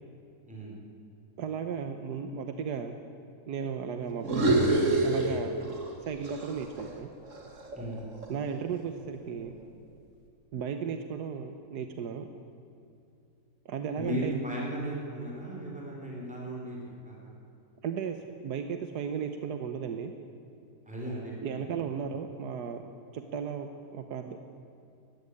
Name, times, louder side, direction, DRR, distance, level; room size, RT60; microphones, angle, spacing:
voice 1, 0.5-0.8 7.7-8.1 14.0-16.8 17.1-17.3 20.9-21.8, right 1 dB, 5° right, -3 dB, 4.3 m, -36 dB
voice 2, 1.4-3.0 3.5-7.1 8.3-9.5 10.5-12.3 13.6-14.4 17.8-18.2 18.4-20.1 21.4-22.8 23.1-24.4, right 6 dB, 90° right, 7 dB, 1.6 m, -35 dB
sound 1, 4.2-6.0 6.2-8.5, right 2 dB, 50° right, 2.6 m, -28 dB
18.5 x 15.0 x 9.9 m, 2.6 s
omnidirectional pair, 1.7 m